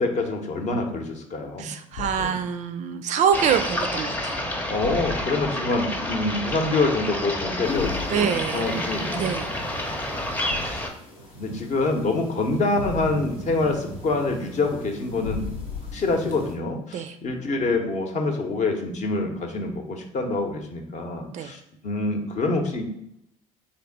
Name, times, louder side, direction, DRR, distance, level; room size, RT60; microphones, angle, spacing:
voice 1, 0.0-1.7 2.2-2.4 4.7-10.3 10.6-10.8 11.4-15.4 15.9-22.8, left 3 dB, 45° left, 4 dB, 0.8 m, -26 dB
voice 2, 1.6-4.4 8.1-8.7 9.1-9.5 16.9-17.1 21.3-21.5, right 8 dB, 45° right, 9 dB, 0.4 m, -25 dB
Thump thud, 1.9-2.4 4.8-5.5 7.7-8.2 10.5-11.0 12.8-13.4 15.2-16.2, left 6 dB, 65° left, 0.4 m, -35 dB
sound 1, 3.3-10.9, left 1 dB, 10° left, 0.6 m, -29 dB
sound 2, 7.6-16.6, right 1 dB, 85° left, 0.8 m, -41 dB
3.4 x 2.6 x 3.9 m, 0.78 s
figure-of-eight pair, 55°, 17 cm